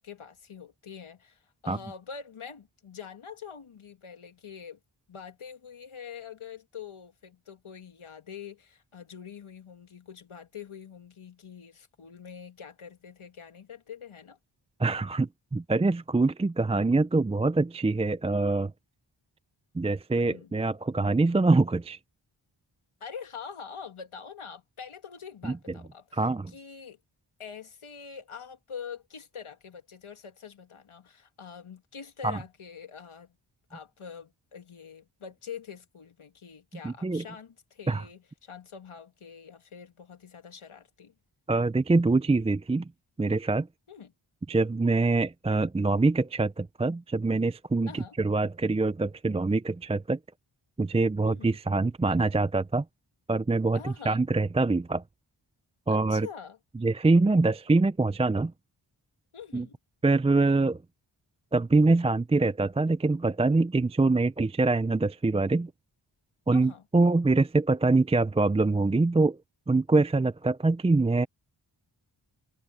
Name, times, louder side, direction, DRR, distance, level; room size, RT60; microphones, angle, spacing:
voice 1, 0.0-4.8 5.1-14.4 20.1-20.5 23.0-27.0 27.4-33.3 33.7-41.1 43.9-44.1 47.9-48.2 51.3-51.6 53.7-54.2 55.9-56.6 59.3-59.8 66.5-66.8, left 7 dB, 85° left, 1.9 m, -45 dB
voice 2, 14.8-18.7 19.7-22.0 25.4-25.5 26.1-26.5 32.2-32.4 36.8-37.2 37.9-38.0 41.5-42.9 43.2-43.7 44.5-50.2 50.8-52.8 53.3-55.0 55.9-56.3 56.8-58.5 59.5-59.7 60.0-60.8 61.5-65.7 66.5-69.4 69.7-71.3, right 3 dB, 15° right, 0.3 m, -24 dB
wide cardioid pair, 75°, 48 cm